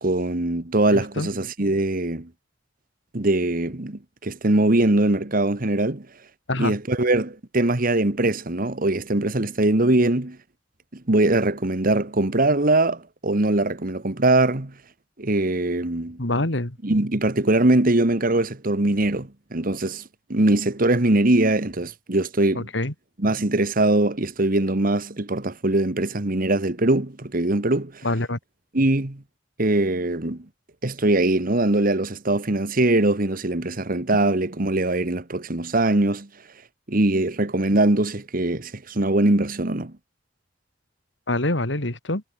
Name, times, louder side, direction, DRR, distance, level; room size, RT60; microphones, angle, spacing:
voice 1, 0.0-2.3 3.1-6.1 6.6-10.4 10.9-14.7 15.2-16.2 16.8-20.0 20.3-22.7 23.2-28.0 28.7-29.2 29.6-30.4 30.8-36.3 36.9-39.9, right 2 dB, 50° right, 1.7 m, -22 dB
voice 2, 0.9-1.3 6.5-6.7 16.2-16.8 22.5-22.9 28.0-28.4 41.3-42.2, left 2 dB, 75° left, 3.2 m, -25 dB
head